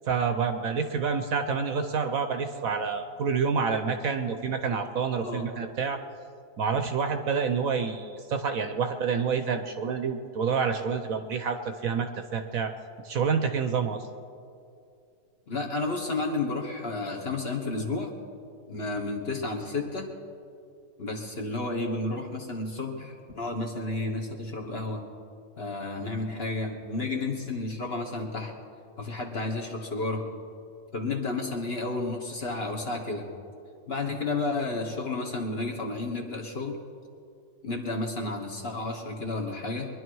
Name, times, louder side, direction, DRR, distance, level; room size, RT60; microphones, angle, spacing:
voice 1, 0.1-6.0 6.6-12.7 13.0-14.1, right 6 dB, 60° right, 7 dB, 1.1 m, -28 dB
voice 2, 15.5-18.1 18.7-20.1 21.0-25.0 25.6-28.5 29.0-30.3 30.9-33.3 33.9-36.8 37.6-39.9, left 3 dB, 40° left, 1 dB, 1.5 m, -31 dB
23.5 x 11.0 x 4.7 m, 2.4 s
omnidirectional pair, 1.8 m